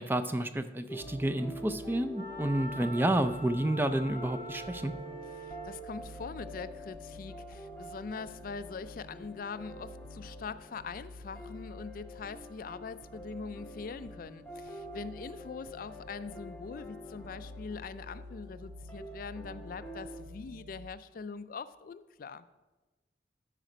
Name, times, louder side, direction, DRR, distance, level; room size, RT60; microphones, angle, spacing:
voice 1, 0.0-4.9, right 1 dB, 10° right, 9 dB, 0.4 m, -30 dB
sound 1, 0.9-20.2, equal, 5° left, 0.9 m, -48 dB
sound 2, 1.0-20.9, left 1 dB, 70° right, 0.5 m, -51 dB
Wind instrument woodwind instrument, 2.1-5.9, right 1 dB, 30° right, 1.5 m, -44 dB
voice 2, 5.4-22.5, left 5 dB, 50° left, 14 dB, 0.4 m, -43 dB
12.5 x 5.0 x 5.1 m, 1.2 s
head